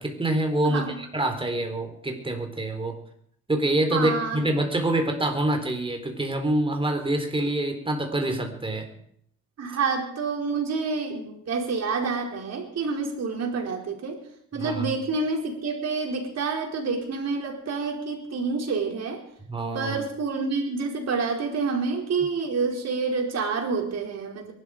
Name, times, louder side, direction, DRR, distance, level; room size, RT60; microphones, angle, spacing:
voice 1, 0.0-3.0 3.5-8.9 14.5-14.9 19.5-19.9, right 1 dB, 15° right, 5 dB, 3.9 m, -26 dB
voice 2, 0.6-1.0 3.9-4.4 9.6-14.2 14.5-19.2 19.7-24.5, right 4 dB, 60° right, 1 dB, 4.6 m, -28 dB
22.5 x 12.5 x 5.0 m, 0.69 s
cardioid pair, 90°, 30 cm